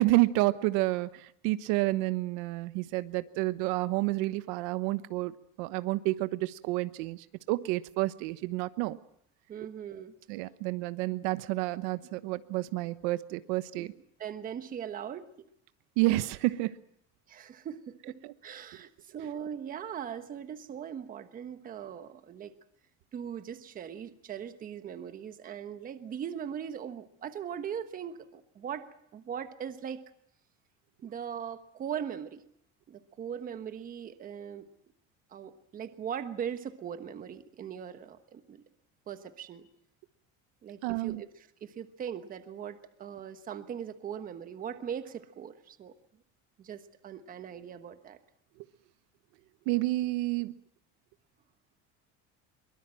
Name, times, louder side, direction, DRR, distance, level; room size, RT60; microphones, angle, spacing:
voice 1, 0.0-9.0 10.3-13.9 16.0-16.7 40.8-41.2 49.7-50.6, right 19 dB, 80° right, 13 dB, 1.1 m, -29 dB
voice 2, 9.5-10.1 13.8-13.9 14.2-15.5 17.3-18.2 18.4-22.5 23.1-28.9 29.1-30.0 31.0-32.4 32.9-34.7 35.3-38.6 39.1-39.6 40.6-41.3 41.6-45.9 46.6-48.2, right 8 dB, 25° right, 9 dB, 1.2 m, -40 dB
23.0 x 22.5 x 7.6 m, 0.69 s
cardioid pair, 180°, 34 cm